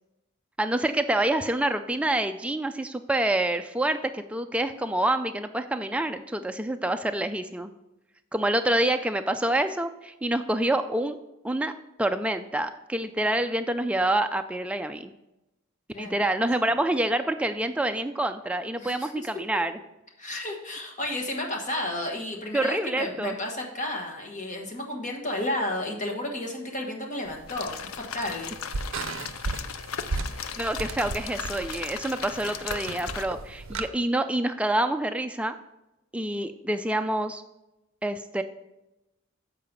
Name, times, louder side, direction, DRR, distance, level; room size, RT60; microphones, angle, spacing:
voice 1, 0.6-7.7 8.3-11.2 11.4-11.7 12.0-15.1 16.0-19.8 22.5-23.4 30.6-35.5 36.1-37.4 38.0-38.4, right 1 dB, 5° right, 8 dB, 0.3 m, -27 dB
voice 2, 18.8-19.3 20.2-28.5, left 1 dB, 35° left, 1 dB, 1.3 m, -32 dB
sound 1, 27.3-33.9, right 3 dB, 65° right, 0.6 m, -36 dB
sound 2, 27.5-33.3, left 8 dB, 80° left, 0.4 m, -37 dB
7.5 x 4.8 x 5.2 m, 0.94 s
head